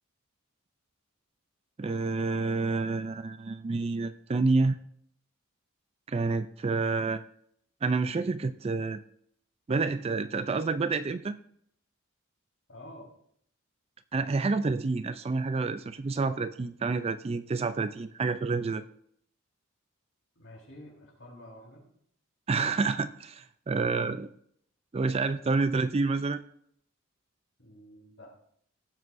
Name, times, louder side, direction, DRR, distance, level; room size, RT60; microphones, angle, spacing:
voice 1, 1.8-4.8 6.1-7.2 7.8-9.0 9.7-11.4 14.1-18.8 22.5-24.3 24.9-26.4, right 3 dB, 30° right, 12 dB, 0.3 m, -28 dB
voice 2, 12.7-13.1 20.4-21.9 27.6-28.3, left 1 dB, 65° left, -2 dB, 4.1 m, -49 dB
17.0 x 7.8 x 2.6 m, 0.66 s
head